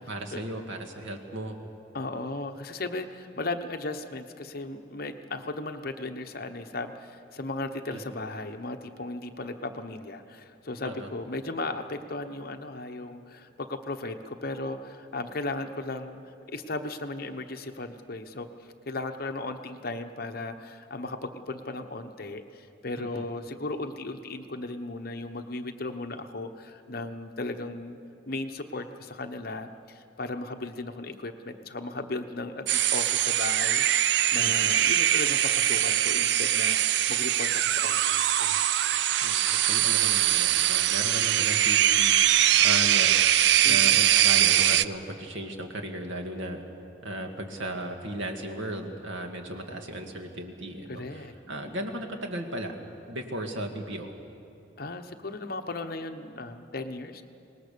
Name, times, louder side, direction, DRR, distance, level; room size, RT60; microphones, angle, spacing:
voice 1, 0.1-1.6 7.9-8.0 10.8-11.1 23.0-23.2 34.4-34.7 39.2-43.1 43.7-46.6 47.0-52.8 53.1-54.1, right 1 dB, 85° right, 3 dB, 2.1 m, -36 dB
voice 2, 1.9-18.5 18.9-28.0 28.3-38.7 43.6-44.0 50.9-51.3 54.8-57.2, left 2 dB, 50° left, 7 dB, 1.0 m, -36 dB
sound 1, 32.7-44.8, right 11 dB, 60° right, 0.4 m, -22 dB
25.0 x 19.5 x 6.9 m, 2.7 s
head